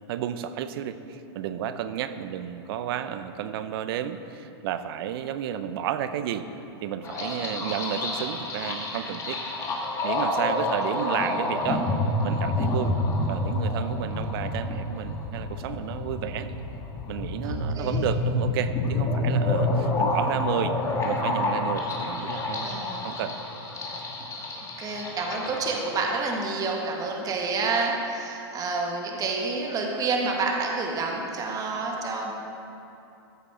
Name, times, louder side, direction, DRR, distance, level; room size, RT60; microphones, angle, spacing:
voice 1, 0.1-6.5 6.8-9.4 10.0-11.8 12.2-12.9 13.3-16.5 17.1-20.8 21.0-22.7 23.0-23.4, right 10 dB, 60° right, 11 dB, 0.8 m, -32 dB
sound 1, 7.0-26.1, left 2 dB, 20° left, 2.1 m, -28 dB
voice 2, 17.4-18.0 22.6-23.1 24.8-32.3, right 3 dB, 25° right, 0 dB, 1.6 m, -29 dB
14.5 x 8.1 x 5.0 m, 2.8 s
hypercardioid pair, 125°, 14 cm